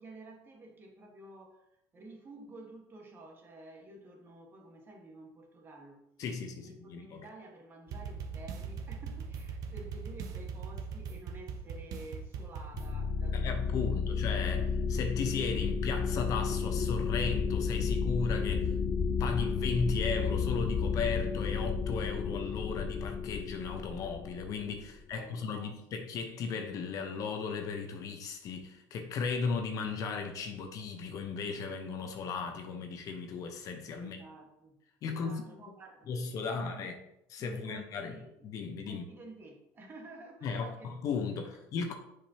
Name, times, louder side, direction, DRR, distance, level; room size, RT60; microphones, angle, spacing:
voice 1, 0.0-6.1 6.6-14.3 24.9-25.8 34.0-36.9 37.4-38.5 38.9-41.6, right 2 dB, 30° right, 1 dB, 1.6 m, -51 dB
voice 2, 6.2-7.2 13.3-18.7 19.2-34.2 35.0-35.5 36.1-36.9 37.3-38.2 38.4-39.0 40.4-41.9, left 5 dB, 55° left, 5 dB, 1.0 m, -36 dB
sound 1, 7.9-12.9, right 5 dB, 60° right, 0.8 m, -40 dB
sound 2, 12.7-25.0, left 5 dB, 40° left, 0.4 m, -32 dB
7.1 x 5.2 x 2.9 m, 0.80 s
cardioid pair, 115°, 7 cm